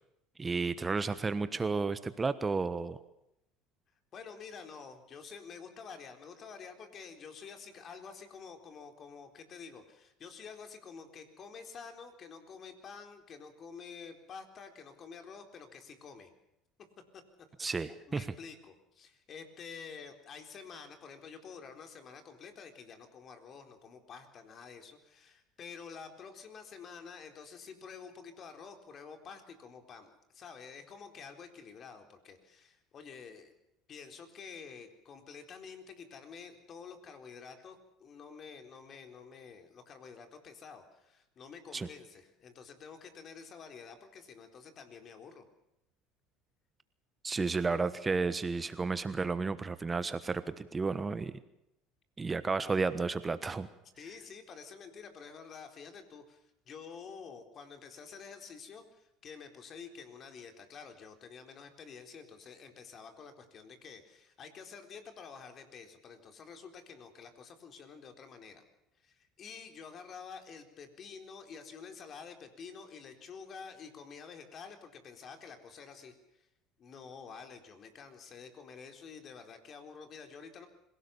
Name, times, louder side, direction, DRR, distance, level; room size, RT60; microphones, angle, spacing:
voice 1, 0.4-3.0 17.6-18.3 41.7-41.9 47.2-51.3 52.2-53.7, right 4 dB, 20° right, 13 dB, 1.2 m, -32 dB
voice 2, 4.1-16.3 17.1-17.2 17.6-33.5 33.9-45.4 47.5-47.6 54.0-68.6 69.0-76.5 76.8-80.7, left 6 dB, 45° left, 7 dB, 4.0 m, -49 dB
26.0 x 17.5 x 7.1 m, 0.83 s
supercardioid pair, 90°, 0 cm